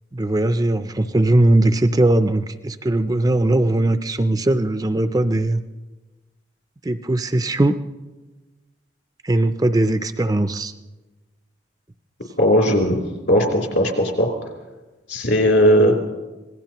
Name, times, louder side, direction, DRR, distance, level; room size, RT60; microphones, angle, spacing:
voice 1, 0.1-5.6 6.8-7.8 9.2-10.7, right 1 dB, 20° right, 10 dB, 0.4 m, -19 dB
voice 2, 12.4-13.0 13.3-14.3 15.1-15.9, equal, 65° left, 0 dB, 3.3 m, -17 dB
26.0 x 18.5 x 3.0 m, 1.2 s
head